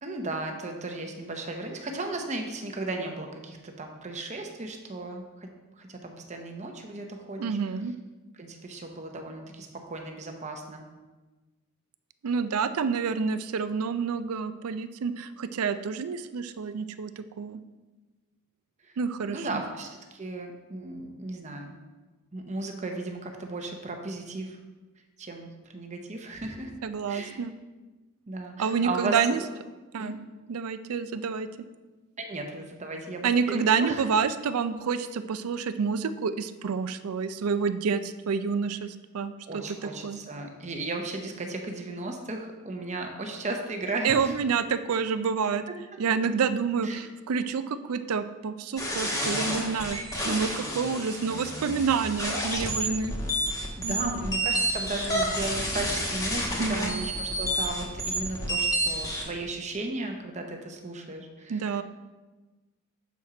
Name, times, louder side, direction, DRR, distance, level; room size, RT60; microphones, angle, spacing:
voice 1, 0.0-5.5 5.8-7.6 8.4-10.8 18.8-18.9 19.3-21.7 22.3-24.6 25.2-25.5 25.7-26.7 27.1-27.4 28.3-29.5 30.0-30.1 32.2-34.1 39.5-44.4 46.8-47.1 52.8-52.9 53.8-61.8, right 2 dB, 35° right, 3 dB, 0.8 m, -35 dB
voice 2, 7.4-7.9 12.2-17.6 19.0-19.6 26.8-27.5 28.6-29.4 29.9-30.2 30.5-31.5 33.2-40.2 44.0-45.6 46.0-50.0 50.2-53.1 53.8-54.2 56.6-57.0 61.5-61.8, right 6 dB, 80° right, 11 dB, 0.4 m, -28 dB
sound 1, 48.8-59.2, right 1 dB, 15° left, 1.1 m, -30 dB
7.2 x 4.3 x 4.9 m, 1.2 s
head